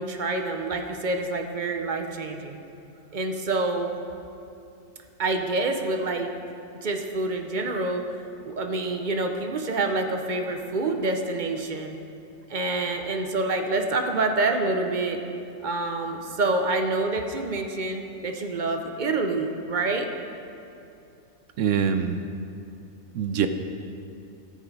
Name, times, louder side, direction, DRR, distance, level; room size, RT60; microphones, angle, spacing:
voice 1, 0.0-2.6 3.1-3.9 5.2-6.3 6.8-8.0 8.4-11.9 12.5-15.2 15.6-20.1, right 2 dB, 45° right, 4 dB, 0.7 m, -27 dB
voice 2, 21.6-22.2 23.1-23.5, right 7 dB, 70° right, 8 dB, 0.9 m, -24 dB
17.0 x 5.6 x 4.8 m, 2.6 s
omnidirectional pair, 1.5 m